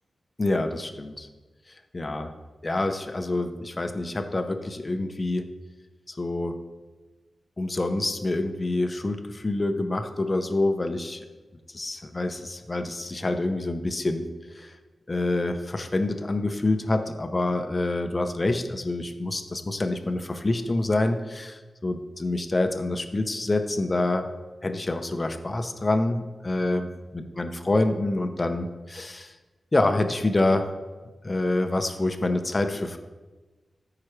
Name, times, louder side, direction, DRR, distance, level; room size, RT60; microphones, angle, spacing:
voice 1, 0.4-1.3 1.9-2.3 2.6-5.5 6.1-6.6 7.6-11.2 11.7-14.3 14.5-14.7 15.1-24.3 24.6-26.9 27.1-29.3 29.7-30.7 31.2-33.0, left 2 dB, 35° left, 7 dB, 0.7 m, -27 dB
13.0 x 4.9 x 3.3 m, 1.2 s
cardioid pair, 70°, 0 cm